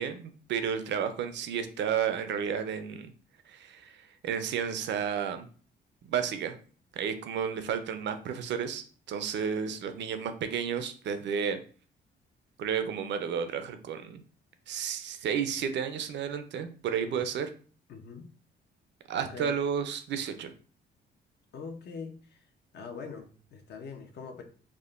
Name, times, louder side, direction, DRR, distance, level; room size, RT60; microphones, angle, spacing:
voice 1, 0.0-3.1 3.5-4.0 4.2-5.5 6.1-6.6 7.0-11.6 12.6-14.2 14.7-17.5 19.1-20.5, right 7 dB, 65° right, 9 dB, 0.5 m, -32 dB
voice 2, 17.9-18.3 19.1-19.6 21.5-22.5 22.7-24.4, left 5 dB, 55° left, 5 dB, 0.6 m, -43 dB
3.5 x 2.1 x 2.4 m, 0.41 s
cardioid pair, 90°, 20 cm